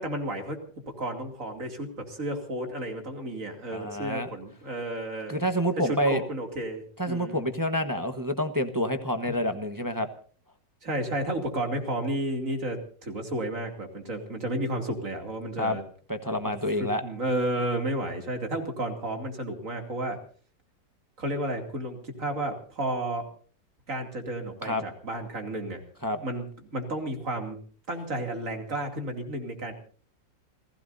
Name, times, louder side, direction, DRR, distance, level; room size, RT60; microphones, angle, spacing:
voice 1, 0.0-5.4 5.8-7.5 9.3-9.4 10.8-15.8 16.8-20.2 21.2-23.3 23.9-25.8 26.2-27.6 27.9-29.7, right 1 dB, 45° right, 4 dB, 3.1 m, -32 dB
voice 2, 3.7-4.3 5.3-6.2 7.0-10.1 15.6-15.8 16.1-17.0 24.6-24.8 26.0-26.2, equal, 15° right, 8 dB, 0.8 m, -28 dB
29.5 x 16.0 x 2.7 m, 0.44 s
omnidirectional pair, 2.0 m